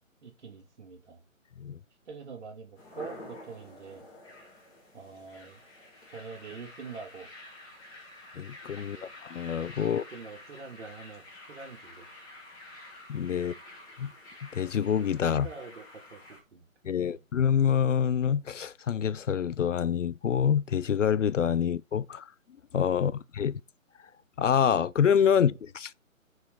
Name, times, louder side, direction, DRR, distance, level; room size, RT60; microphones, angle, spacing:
voice 1, 0.2-1.2 2.1-4.0 4.9-5.6 6.1-7.3 8.8-9.1 9.8-11.2 11.5-12.1 13.4-13.6 15.4-17.2 22.9-23.2 25.4-25.6, right 5 dB, 55° right, 2.3 m, -45 dB
sound 1, 2.8-16.4, left 2 dB, 10° left, 2.5 m, -49 dB
voice 2, 8.4-10.0 13.1-13.5 14.0-14.1 14.5-15.5 16.8-22.3 22.7-23.6 24.4-25.9, left 8 dB, 65° left, 0.5 m, -26 dB
8.4 x 4.7 x 4.0 m
figure-of-eight pair, 145°, 41 cm